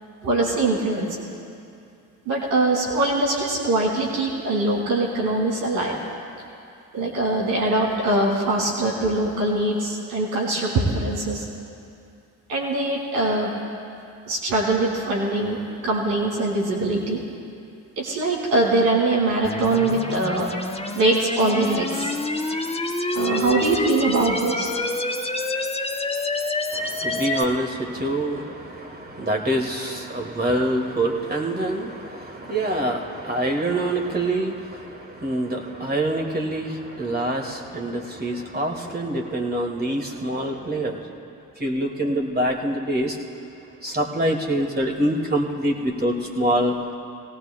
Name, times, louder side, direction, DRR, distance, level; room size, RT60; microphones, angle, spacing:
voice 1, 0.2-1.1 2.3-6.0 6.9-11.5 12.5-13.5 14.3-17.2 18.0-20.5 20.9-22.1 23.1-24.7, right 2 dB, 80° right, -2 dB, 2.5 m, -22 dB
sound 1, 19.4-27.4, left 2 dB, 15° left, 1.0 m, -27 dB
voice 2, 26.9-34.8 35.2-41.0 41.6-43.1 43.8-46.8, right 1 dB, 25° right, 0 dB, 2.1 m, -25 dB
20.5 x 18.0 x 2.2 m, 2.6 s
hypercardioid pair, 40°, 40 cm